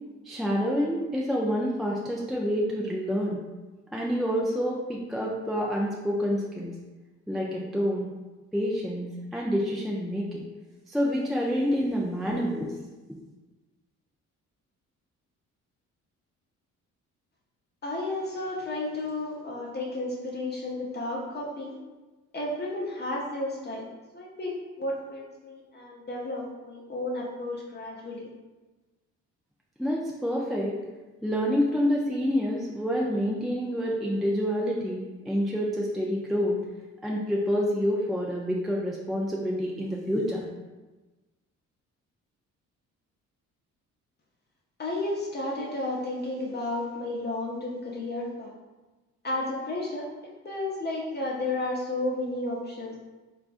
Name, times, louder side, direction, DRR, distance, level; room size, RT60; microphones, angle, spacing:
voice 1, 0.3-3.4 3.9-6.8 7.3-8.1 8.5-10.4 10.9-12.7 29.8-30.7 31.2-36.6 37.0-40.4, equal, ahead, -3 dB, 0.3 m, -27 dB
voice 2, 17.8-21.8 22.3-23.9 24.1-28.3 44.8-48.5 49.2-50.1 50.4-52.9, left 2 dB, 35° left, -4 dB, 0.6 m, -32 dB
3.4 x 2.5 x 2.4 m, 1.2 s
cardioid pair, 90°, 30 cm